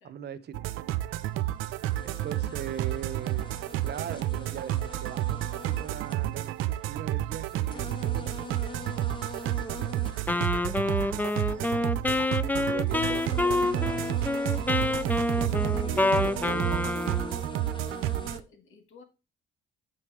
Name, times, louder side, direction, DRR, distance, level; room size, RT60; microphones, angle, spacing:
voice 1, 0.0-0.7 2.0-3.5 3.8-8.4 12.5-14.4 15.4-17.3, right 9 dB, 55° right, 14 dB, 0.8 m, -40 dB
sound 1, 0.5-18.4, right 14 dB, 90° right, 0.5 m, -31 dB
sound 2, 1.4-1.5 1.9-6.9 7.3-11.7 12.6-12.7 12.9-18.4, left 2 dB, 25° left, 1.3 m, -42 dB
Wind instrument woodwind instrument, 10.3-17.4, left 2 dB, 10° left, 0.4 m, -27 dB
voice 2, 10.6-11.0 18.2-19.0, left 4 dB, 85° left, 6 dB, 1.6 m, -55 dB
9.1 x 3.2 x 6.0 m, 0.30 s
cardioid pair, 90°, 20 cm